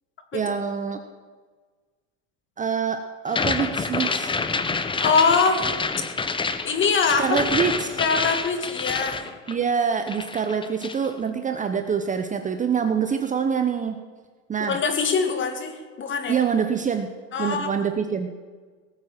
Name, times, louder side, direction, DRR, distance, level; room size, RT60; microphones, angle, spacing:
voice 1, 0.3-1.0 2.6-4.4 7.2-8.0 9.5-14.0 14.5-14.8 16.3-17.1 17.4-18.3, right 6 dB, 20° right, 7 dB, 0.8 m, -25 dB
sound 1, 3.3-9.8 10.1-11.1, left 4 dB, 15° left, 0.9 m, -27 dB
voice 2, 5.0-5.6 6.6-7.4 8.0-9.3 14.7-16.4 17.3-17.7, left 5 dB, 30° left, 6 dB, 2.3 m, -23 dB
18.5 x 7.5 x 7.4 m, 1.4 s
supercardioid pair, 110°, 39 cm